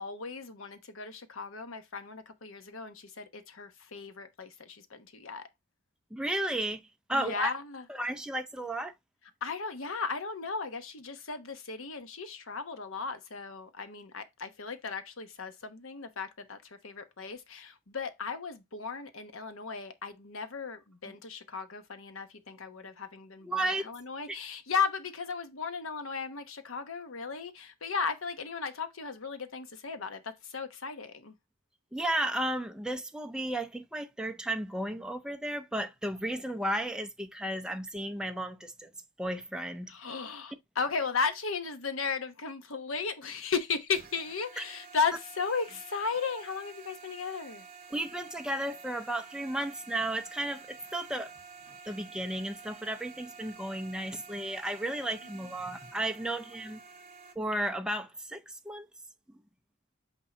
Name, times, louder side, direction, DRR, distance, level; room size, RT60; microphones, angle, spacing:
voice 1, 0.0-5.5 7.1-7.8 9.4-31.3 39.9-47.6, left 5 dB, 70° left, 1.0 m, -36 dB
voice 2, 6.1-7.5 7.9-8.9 23.4-23.9 31.9-38.9 39.2-39.9 44.6-44.7 47.9-51.3 51.8-56.8 57.4-58.9, right 1 dB, 5° right, 0.6 m, -34 dB
sound 1, 43.9-57.3, right 5 dB, 45° right, 1.9 m, -50 dB
8.2 x 2.7 x 4.3 m
head